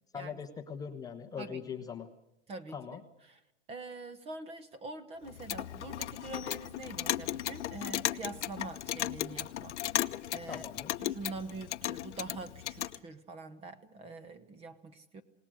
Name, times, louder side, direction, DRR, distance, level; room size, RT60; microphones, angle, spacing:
voice 1, 0.1-2.1 2.7-3.0 10.5-11.0, left 6 dB, 10° left, 4 dB, 1.0 m, -41 dB
voice 2, 2.5-3.0 3.3-3.4 3.7-10.6 11.0-15.2, right 3 dB, 15° right, 14 dB, 1.2 m, -45 dB
Clock, 5.3-13.0, left 13 dB, 65° left, 1.0 m, -36 dB
27.5 x 19.0 x 6.3 m, 0.85 s
hypercardioid pair, 150°, 38 cm